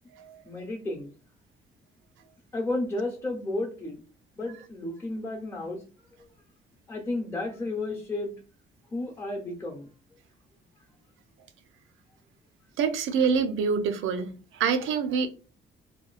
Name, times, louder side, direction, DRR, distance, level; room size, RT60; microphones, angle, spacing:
voice 1, 0.4-1.1 2.5-4.0 4.4-5.8 6.9-8.3 8.9-9.9, left 2 dB, 15° left, 0.7 m, -32 dB
voice 2, 12.8-14.3 14.6-15.3, right 6 dB, 85° right, 0.5 m, -25 dB
2.9 x 2.2 x 2.3 m
cardioid pair, 90°, 20 cm